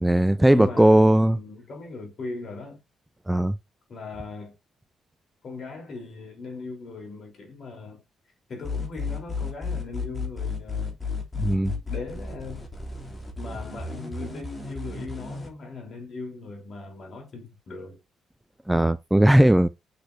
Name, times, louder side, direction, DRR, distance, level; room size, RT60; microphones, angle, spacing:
voice 1, 0.0-1.4 3.3-3.5 11.4-11.7 18.7-19.7, right 1 dB, 5° right, 0.4 m, -18 dB
voice 2, 0.5-2.8 3.9-4.6 5.4-8.0 8.5-11.0 11.9-12.7 13.4-18.0, left 3 dB, 50° left, 3.6 m, -39 dB
sound 1, 8.6-15.5, left 4 dB, 20° left, 2.9 m, -33 dB
6.7 x 5.9 x 2.7 m
cardioid pair, 90°, 0 cm